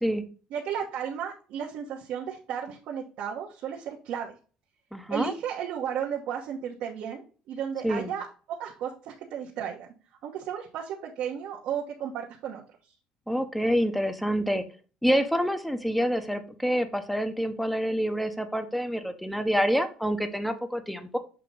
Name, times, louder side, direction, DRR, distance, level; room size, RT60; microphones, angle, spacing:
voice 1, 0.5-4.4 5.1-9.9 10.2-12.9, right 8 dB, 65° right, -2 dB, 1.1 m, -34 dB
voice 2, 4.9-5.3 7.8-8.1 13.3-14.6 15.0-21.2, equal, ahead, 8 dB, 0.8 m, -27 dB
6.7 x 2.9 x 5.2 m, 0.37 s
cardioid pair, 120°, 2 cm